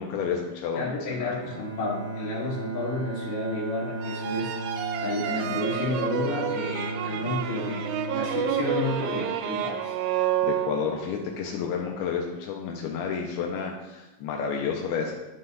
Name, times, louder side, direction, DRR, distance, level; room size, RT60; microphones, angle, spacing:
voice 1, 0.0-1.3 10.2-15.1, left 6 dB, 85° left, 1 dB, 2.5 m, -31 dB
voice 2, 0.7-4.6 5.0-10.0, left 2 dB, 55° left, -5 dB, 2.7 m, -31 dB
Bowed string instrument, 1.4-9.6, right 2 dB, 60° right, 2.7 m, -36 dB
sound 1, 4.0-11.2, right 9 dB, 85° right, 2.1 m, -30 dB
11.5 x 3.9 x 3.9 m, 1.1 s
omnidirectional pair, 4.6 m